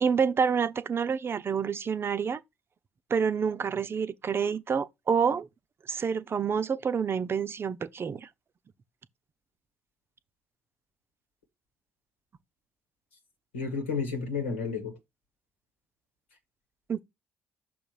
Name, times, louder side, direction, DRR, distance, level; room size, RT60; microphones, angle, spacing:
voice 1, 0.0-2.4 3.1-5.5 5.9-8.3 16.9-17.0, right 6 dB, 40° right, 0.6 m, -28 dB
voice 2, 13.5-15.0, left 5 dB, 90° left, 1.6 m, -31 dB
6.4 x 3.8 x 4.7 m
hypercardioid pair, 45°, 6 cm